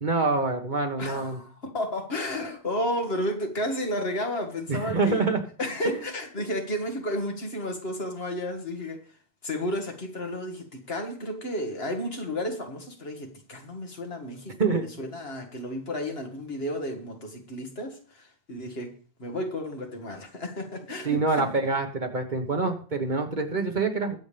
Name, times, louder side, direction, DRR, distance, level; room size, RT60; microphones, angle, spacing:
voice 1, 0.0-1.4 4.7-5.4 14.6-14.8 21.0-24.2, right 3 dB, 50° right, 4 dB, 1.6 m, -26 dB
voice 2, 1.0-5.3 5.6-9.0 9.4-18.9 19.2-21.5, left 1 dB, 75° left, 3 dB, 2.2 m, -32 dB
21.5 x 7.2 x 3.4 m, 0.41 s
omnidirectional pair, 1.0 m